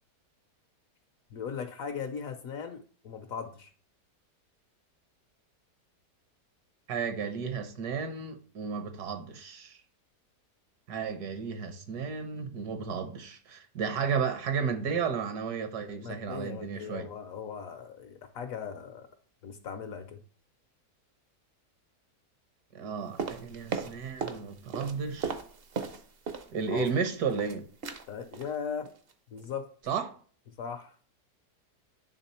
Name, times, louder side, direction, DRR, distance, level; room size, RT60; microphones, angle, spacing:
voice 1, 1.3-3.7 16.0-19.1 19.4-20.2 26.7-26.9 28.1-28.9 29.3-29.7 30.6-31.0, left 7 dB, 65° left, 0.9 m, -38 dB
voice 2, 6.9-9.8 10.9-17.1 22.7-25.3 26.5-27.7 29.9-30.1, right 6 dB, 70° right, 1.4 m, -33 dB
sound 1, 23.2-24.4 24.7-26.5 26.8-27.5 27.8-28.0 28.3-28.5 28.9-29.1 29.4-29.5, right 6 dB, 55° right, 0.6 m, -36 dB
8.8 x 3.5 x 4.2 m
omnidirectional pair, 1.8 m